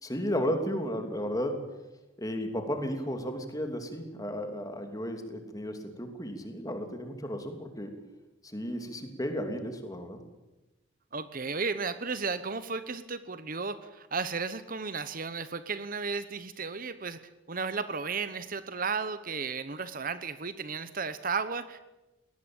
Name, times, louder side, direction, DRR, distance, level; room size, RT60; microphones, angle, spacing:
voice 1, 0.0-1.6 2.2-8.0 8.4-10.2, equal, 20° left, 5 dB, 2.9 m, -34 dB
voice 2, 11.1-17.2 17.5-21.8, right 5 dB, 45° right, 12 dB, 1.0 m, -34 dB
21.5 x 18.5 x 8.9 m, 1.0 s
head